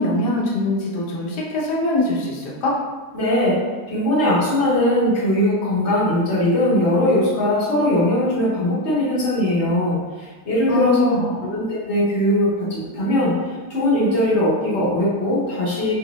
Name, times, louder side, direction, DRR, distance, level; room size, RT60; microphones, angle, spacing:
voice 1, 0.0-2.7 10.7-11.5, left 1 dB, 85° left, -3 dB, 1.4 m, -22 dB
voice 2, 3.1-3.6 3.9-10.0 10.4-11.1 11.4-13.3 13.7-15.9, left 1 dB, 45° left, -9 dB, 1.5 m, -20 dB
4.5 x 2.7 x 3.0 m, 1.3 s
omnidirectional pair, 1.7 m